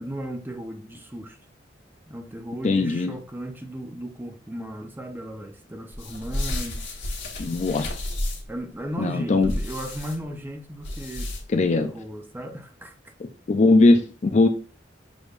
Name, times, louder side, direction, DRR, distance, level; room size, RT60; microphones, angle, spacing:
voice 1, 0.0-1.4 2.1-6.8 8.5-11.3 11.7-13.0, right 1 dB, 10° right, 0.6 m, -36 dB
voice 2, 2.6-3.1 7.4-7.9 9.0-9.5 11.5-11.9 13.2-14.5, left 2 dB, 40° left, 0.4 m, -20 dB
sound 1, 5.9-8.6 9.4-10.2 10.8-11.6, left 1 dB, 85° left, 1.2 m, -31 dB
6.2 x 3.3 x 2.4 m
head